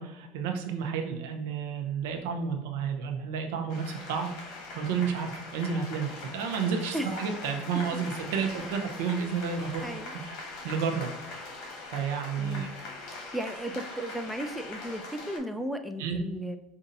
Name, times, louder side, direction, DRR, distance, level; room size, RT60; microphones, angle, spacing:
voice 1, 0.0-4.3 4.7-9.9 10.3-11.1 11.9-12.7 16.0-16.2, right 6 dB, 75° right, 4 dB, 0.7 m, -31 dB
sound 1, 3.7-15.4, left 3 dB, 60° left, 1.3 m, -41 dB
voice 2, 9.8-10.1 12.4-12.7 13.1-16.6, right 1 dB, 5° right, 7 dB, 0.3 m, -35 dB
5.2 x 2.6 x 2.6 m, 0.99 s
supercardioid pair, 105°, 0 cm